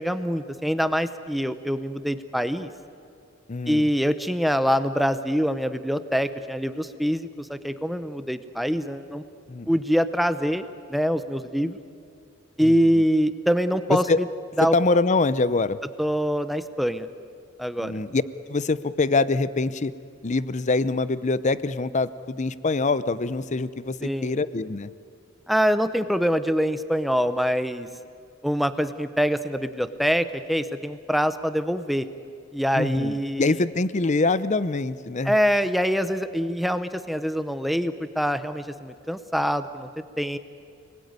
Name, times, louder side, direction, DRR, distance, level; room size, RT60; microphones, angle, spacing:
voice 1, 0.0-2.7 3.7-9.2 9.7-11.8 12.6-14.0 14.6-14.7 16.0-17.1 17.6-18.0 24.0-24.3 25.5-27.9 28.4-32.1 32.5-33.5 35.3-39.9 40.2-40.4, equal, ahead, 11 dB, 0.8 m, -24 dB
voice 2, 3.5-3.9 9.5-9.7 12.6-13.0 13.9-14.2 14.6-15.8 17.8-18.2 18.5-19.9 20.2-24.9 32.7-35.3, left 3 dB, 40° left, 16 dB, 0.6 m, -24 dB
29.5 x 20.5 x 9.6 m, 2.3 s
head